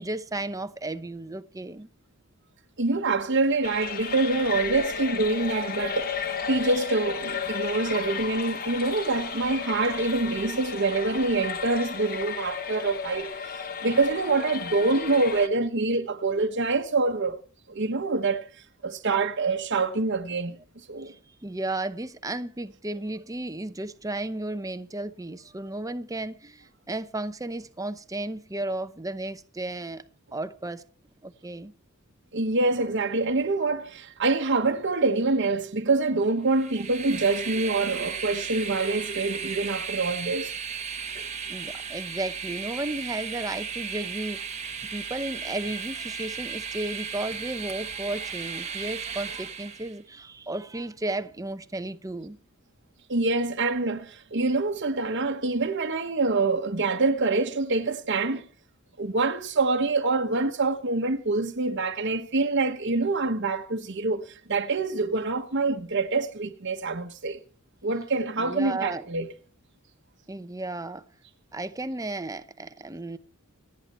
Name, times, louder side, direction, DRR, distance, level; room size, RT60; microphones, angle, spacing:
voice 1, 0.0-1.9 21.0-30.0 30.3-30.8 31.2-31.7 41.5-44.6 44.9-52.4 68.4-69.1 70.3-71.0 71.5-73.2, right 2 dB, 15° right, 0.8 m, -34 dB
voice 2, 2.8-17.4 17.7-18.4 18.8-20.5 20.9-21.1 32.3-40.5 53.1-58.5 59.0-67.4 67.8-69.3, right 3 dB, 55° right, 1.2 m, -26 dB
sound 1, 3.6-15.5, left 6 dB, 45° left, 1.4 m, -34 dB
Train, 36.5-50.0, right 6 dB, 30° right, 1.1 m, -35 dB
28.0 x 9.8 x 4.4 m
head